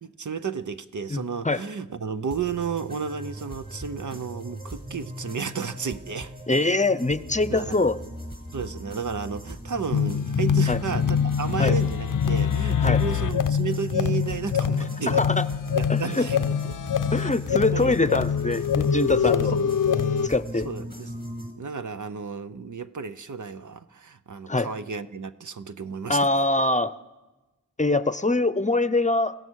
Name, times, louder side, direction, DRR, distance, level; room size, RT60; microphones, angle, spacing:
voice 1, 0.0-6.3 7.5-7.8 8.5-15.2 15.8-16.7 17.5-18.0 19.3-19.6 20.6-21.1 21.6-26.2, right 5 dB, 65° right, 11 dB, 0.8 m, -32 dB
voice 2, 1.1-1.6 6.5-8.0 10.7-10.8 11.6-11.8 12.8-13.0 14.8-15.4 15.9-16.3 17.1-19.7 20.2-20.7 24.5-24.7 26.1-26.9 27.8-29.3, left 2 dB, 20° left, 14 dB, 0.7 m, -24 dB
sound 1, 2.3-21.5, right 1 dB, 30° right, 5.4 m, -39 dB
sound 2, 9.9-20.3, left 7 dB, 75° left, 0.6 m, -24 dB
28.5 x 16.0 x 6.4 m, 1.1 s
wide cardioid pair, 70°, 32 cm